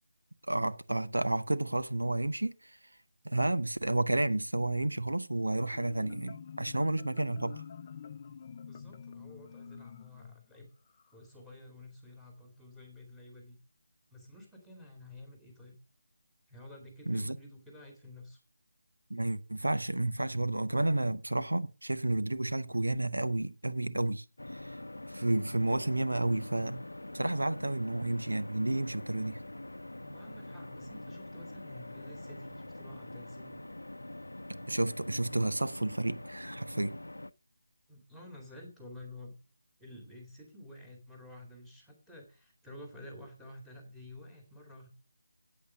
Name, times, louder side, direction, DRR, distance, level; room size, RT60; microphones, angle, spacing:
voice 1, 0.5-2.8 3.2-7.6 17.1-17.4 19.1-24.2 24.5-24.8 25.1-26.8 27.1-29.4 34.6-37.0, right 2 dB, 85° right, 0.7 m, -31 dB
Marimba xylophone, 5.6-11.1, left 7 dB, 30° left, 0.6 m, -48 dB
voice 2, 8.7-10.7 11.1-13.6 14.1-15.7 16.5-18.4 30.0-33.6 37.9-39.4 39.8-44.9, left 1 dB, ahead, 2.5 m, -51 dB
sound 1, 24.4-37.3, left 1 dB, 85° left, 0.6 m, -45 dB
8.5 x 8.4 x 4.7 m
figure-of-eight pair, 160°, 0 cm